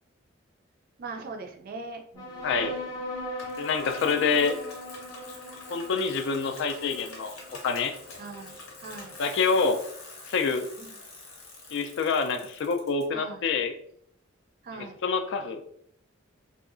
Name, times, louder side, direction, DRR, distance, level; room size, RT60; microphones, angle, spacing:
voice 1, 1.0-3.0 8.1-9.2 10.8-10.9 13.1-13.4 14.6-15.0, right 3 dB, 45° right, 4 dB, 0.4 m, -41 dB
sound 1, 2.2-9.1, left 1 dB, 20° left, 0.6 m, -39 dB
Bicycle, 3.4-13.0, left 2 dB, 85° left, 0.8 m, -46 dB
voice 2, 3.6-4.6 5.7-7.3 7.6-7.9 9.2-9.8 10.3-10.7 11.7-13.7 15.0-15.6, left 5 dB, 60° left, 7 dB, 0.3 m, -26 dB
2.7 x 2.3 x 2.4 m, 0.67 s
head